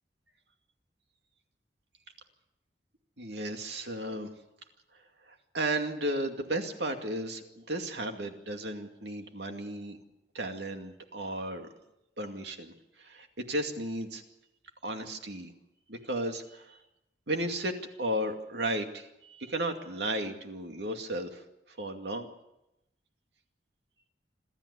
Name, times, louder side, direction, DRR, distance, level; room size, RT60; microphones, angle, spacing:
voice 1, 3.2-4.3 5.3-10.0 10.3-11.7 12.2-12.7 13.0-14.2 14.8-15.5 15.9-16.8 17.3-21.4 21.7-22.3, right 1 dB, 75° right, 5 dB, 2.4 m, -34 dB
27.0 x 13.0 x 8.4 m, 0.90 s
head